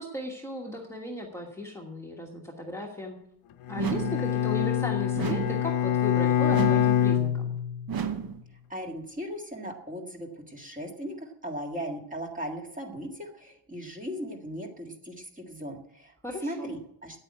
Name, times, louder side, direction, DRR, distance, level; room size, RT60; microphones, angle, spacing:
voice 1, 0.0-3.2 3.7-7.4 16.2-16.7, left 2 dB, 5° left, 0 dB, 1.4 m, -36 dB
Bowed string instrument, 3.7-8.0, left 10 dB, 80° left, 1.2 m, -25 dB
sound 1, 3.8-4.3 5.2-5.7 6.5-7.0 7.9-8.4, right 7 dB, 45° right, 1.0 m, -32 dB
voice 2, 8.7-16.1 16.4-17.2, equal, 15° right, 2 dB, 1.8 m, -38 dB
9.0 x 8.7 x 9.6 m, 0.74 s
cardioid pair, 155°, 50 cm